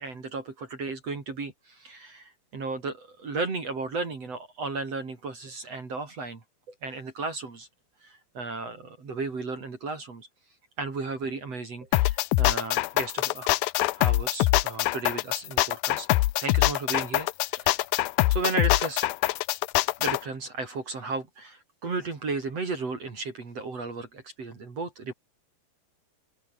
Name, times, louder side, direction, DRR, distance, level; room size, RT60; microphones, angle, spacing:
voice 1, 0.0-6.4 6.8-7.7 8.0-10.3 10.8-13.6 14.0-16.1 16.4-17.9 18.3-19.1 20.0-25.1, right 3 dB, 40° right, 4.5 m, -34 dB
sound 1, 11.9-20.2, left 18 dB, 80° left, 2.2 m, -24 dB
omnidirectional pair, 4.8 m